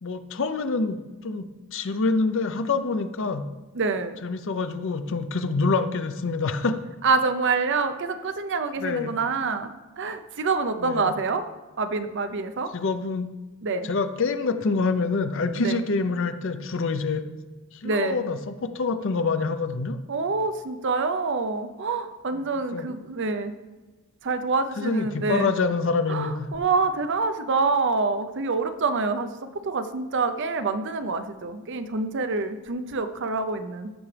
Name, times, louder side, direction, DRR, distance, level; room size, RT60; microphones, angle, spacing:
voice 1, 0.0-3.4 4.2-6.8 8.8-9.2 10.8-11.1 12.7-13.3 13.8-17.3 17.7-20.0 22.7-22.9 24.8-26.5, left 4 dB, 60° left, 10 dB, 0.6 m, -26 dB
voice 2, 3.7-4.2 7.0-9.7 10.0-11.4 11.8-12.7 13.6-13.9 15.6-15.8 17.8-18.2 20.1-23.5 24.2-25.5 26.1-29.3 29.6-33.9, right 4 dB, 55° right, 9 dB, 0.6 m, -26 dB
14.0 x 6.0 x 3.3 m, 1.2 s
head